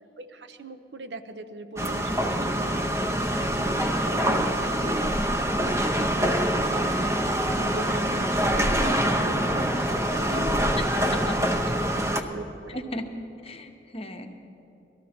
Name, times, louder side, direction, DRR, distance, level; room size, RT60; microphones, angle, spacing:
voice 1, 0.2-7.1 7.4-10.8 12.0-12.8, right 2 dB, 70° right, 8 dB, 0.7 m, -40 dB
sound 1, 1.8-12.2, right 1 dB, 15° right, 0.7 m, -25 dB
voice 2, 3.7-4.2 10.3-10.5 11.0-11.3 12.2-12.3 12.7-13.1 13.4-14.3, left 1 dB, 30° left, 5 dB, 0.9 m, -36 dB
19.0 x 13.5 x 4.3 m, 2.9 s
head